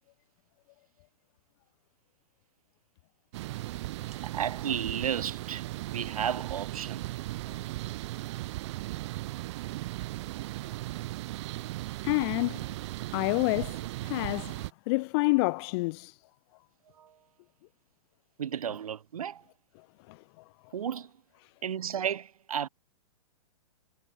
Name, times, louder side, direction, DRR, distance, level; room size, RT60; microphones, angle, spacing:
sound 1, 3.3-14.7, right 17 dB, 50° right, 4.2 m, -37 dB
voice 1, 4.2-7.1 17.0-17.1 18.4-19.4 20.7-21.1 21.6-22.7, right 9 dB, 75° right, 7.2 m, -33 dB
voice 2, 12.0-12.6 13.1-16.2 20.1-20.2, left 26 dB, 45° left, 3.0 m, -28 dB
hypercardioid pair, 135°, 18 cm